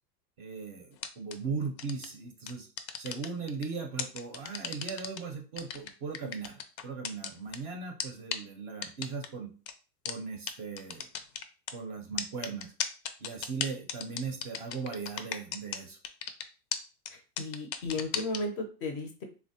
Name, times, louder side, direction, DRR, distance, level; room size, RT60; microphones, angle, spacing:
voice 1, 0.4-2.7 3.0-9.5 10.0-11.1 11.7-12.7 13.2-16.0, right 5 dB, 35° right, 4 dB, 0.5 m, -38 dB
sound 1, 1.0-1.3 1.8-2.1 2.5-3.6 4.0-5.2 5.6-7.6 8.0-8.1 8.3-8.4 8.8-9.3 9.7-9.8 10.1-10.2 10.5-10.6 10.8-11.7 12.2-15.8 16.0-16.4 16.7-16.8 17.1-17.2 17.4-18.4, left 8 dB, 90° left, 0.6 m, -34 dB
voice 2, 17.1-19.2, left 2 dB, 35° left, 5 dB, 0.4 m, -35 dB
3.4 x 2.0 x 2.6 m, 0.35 s
hypercardioid pair, 130°, 49 cm